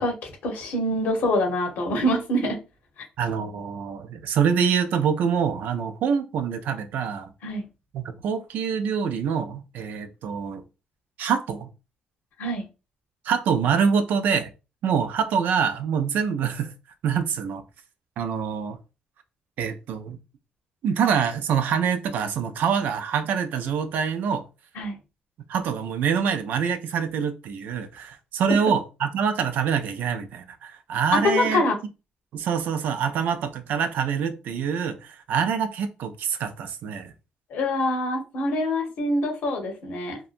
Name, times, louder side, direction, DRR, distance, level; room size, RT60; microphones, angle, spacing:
voice 1, 0.0-2.6 7.4-7.6 12.4-12.6 24.8-25.0 31.1-31.8 37.5-40.2, left 1 dB, 80° left, 1.0 m, -25 dB
voice 2, 3.2-7.3 7.9-10.6 11.2-11.7 13.2-14.5 14.8-16.7 17.0-17.6 18.2-18.8 19.6-20.2 20.8-24.5 25.5-31.6 32.3-37.1, right 7 dB, 80° right, 0.4 m, -25 dB
2.7 x 2.2 x 2.5 m
cardioid pair, 95°, 3 cm